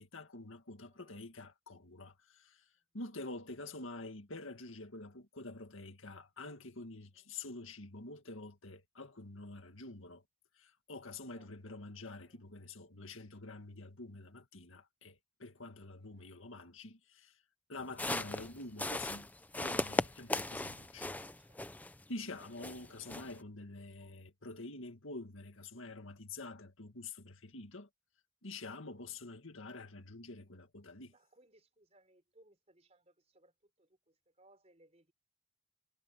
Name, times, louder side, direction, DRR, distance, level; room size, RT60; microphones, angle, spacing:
voice 1, 0.0-2.7 2.9-10.2 10.6-17.4 17.7-19.3 19.6-21.2 22.1-27.9 28.4-31.1, left 2 dB, 65° left, 2.0 m, -47 dB
voice 2, 0.9-1.3 3.6-3.8 11.3-12.4 16.0-16.6 21.1-21.9 31.1-35.1, right 1 dB, 30° right, 4.6 m, -68 dB
sound 1, 17.8-22.0 22.4-23.4, left 2 dB, 5° left, 0.5 m, -38 dB
head